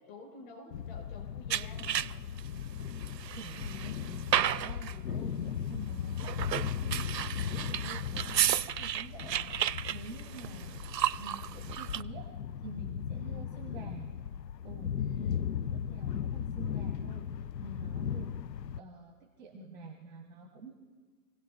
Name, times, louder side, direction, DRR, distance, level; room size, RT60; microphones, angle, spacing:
voice 1, 0.0-2.1 5.1-5.2 10.4-10.8 13.2-13.5 15.0-15.4, left 4 dB, 35° left, 1 dB, 5.6 m, -50 dB
sound 1, 0.7-18.8, left 8 dB, 85° left, 0.6 m, -37 dB
sound 2, 1.5-2.4 2.9-5.0 6.1-12.0, right 11 dB, 85° right, 0.6 m, -33 dB
voice 2, 3.1-6.4 6.8-9.4 9.9-10.8 11.2-12.3 12.6-14.1 14.6-14.9 15.5-17.3 17.6-18.4 18.8-20.7, right 3 dB, 5° right, 2 dB, 0.8 m, -48 dB
28.0 x 17.0 x 2.6 m, 1.4 s
hypercardioid pair, 145°, 49 cm